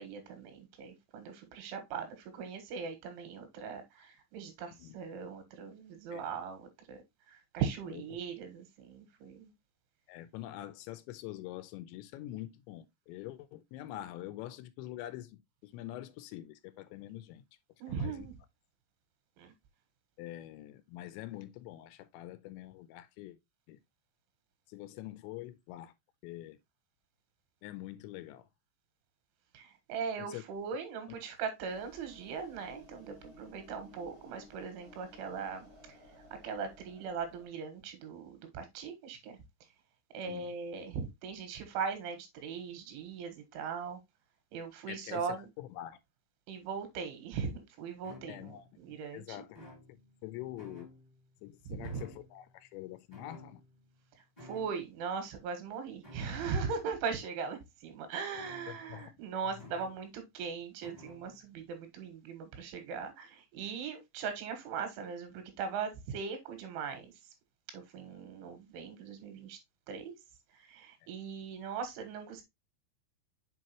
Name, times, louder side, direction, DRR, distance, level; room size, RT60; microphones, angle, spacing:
voice 1, 0.0-7.0 7.3-9.5 17.8-18.3 19.4-19.5 29.5-35.7 36.4-39.4 40.1-44.0 44.5-45.5 46.5-49.4 51.7-51.9 54.4-67.1 67.7-69.6 69.9-70.1 70.5-72.4, right 6 dB, 85° right, 3.9 m, -39 dB
voice 2, 6.1-6.4 7.9-8.2 10.1-17.4 17.9-18.3 20.2-23.4 23.7-23.8 24.7-25.9 26.2-26.6 27.6-28.5 30.2-30.4 31.1-31.2 40.3-40.5 44.9-46.0 48.3-50.9 51.4-53.6 58.7-59.1 59.6-59.7, left 14 dB, 85° left, 2.8 m, -45 dB
sound 1, 31.7-37.5, left 1 dB, 35° right, 0.8 m, -57 dB
sound 2, 48.0-48.7 49.5-50.3 50.6-51.3 51.8-52.6 53.1-54.0 54.4-54.9 56.0-56.6 58.3-59.1 59.6-60.1 60.8-61.4, left 1 dB, 25° left, 0.7 m, -54 dB
7.5 x 4.7 x 3.0 m
omnidirectional pair, 5.3 m